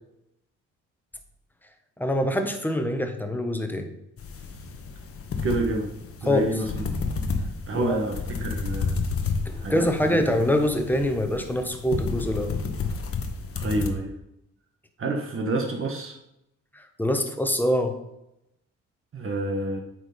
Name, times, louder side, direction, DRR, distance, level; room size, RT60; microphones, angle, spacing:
voice 1, 2.0-3.9 6.3-6.5 7.7-8.0 9.4-12.6 16.7-17.9, left 1 dB, 5° left, 5 dB, 1.3 m, -25 dB
sound 1, 4.2-13.9, left 4 dB, 50° left, 1.3 m, -31 dB
voice 2, 5.4-5.9 6.2-7.0 7.7-9.0 9.6-10.2 13.6-14.1 15.0-16.2 19.1-19.8, right 2 dB, 45° right, 1 dB, 1.4 m, -28 dB
8.8 x 4.9 x 5.2 m, 0.85 s
cardioid pair, 90°, 30 cm